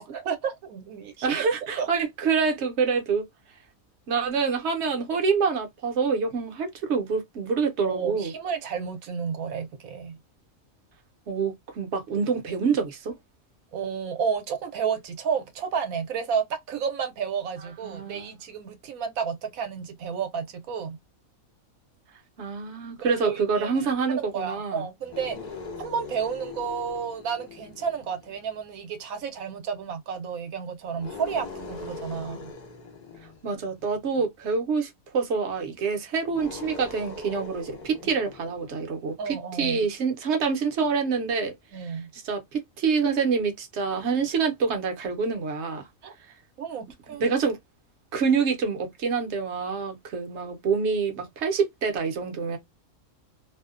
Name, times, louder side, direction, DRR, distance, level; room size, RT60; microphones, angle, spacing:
voice 1, 0.0-1.4 1.8-1.9 7.8-10.2 13.7-21.0 23.0-25.4 25.8-32.5 38.0-38.1 39.2-39.9 41.7-42.1 46.0-46.1 46.6-47.3, right 6 dB, 80° right, 1.1 m, -31 dB
voice 2, 1.2-3.2 4.1-8.3 11.3-13.1 17.8-18.3 22.4-24.8 33.4-45.8 47.1-47.6 48.1-52.6, right 5 dB, 60° right, 0.9 m, -26 dB
sound 1, 25.0-28.6 30.9-34.1 36.3-39.0, left 4 dB, 60° left, 0.4 m, -41 dB
2.6 x 2.1 x 2.4 m
omnidirectional pair, 1.5 m